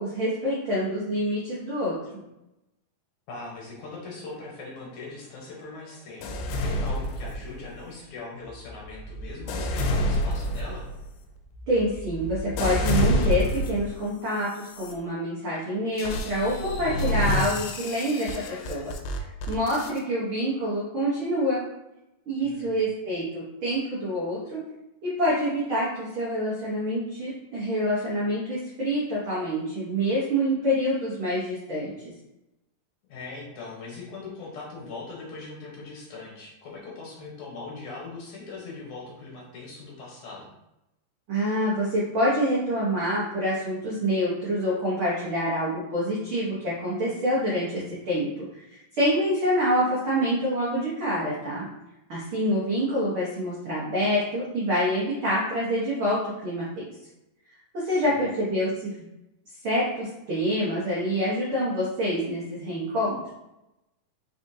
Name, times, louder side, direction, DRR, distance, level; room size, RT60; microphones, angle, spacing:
voice 1, 0.0-1.9 11.7-18.3 18.7-21.6 22.3-24.6 25.0-31.9 41.3-51.6 52.1-56.9 57.7-59.0 59.6-63.3, equal, 70° right, -8 dB, 1.2 m, -26 dB
voice 2, 3.3-10.9 22.4-22.8 33.1-40.5 57.9-58.2, left 3 dB, 70° left, -4 dB, 2.1 m, -40 dB
sound 1, 6.2-7.8 8.5-14.0 14.6-14.9 16.0-20.0, equal, 85° left, 2.3 m, -28 dB
5.2 x 3.6 x 2.7 m, 0.91 s
omnidirectional pair, 4.0 m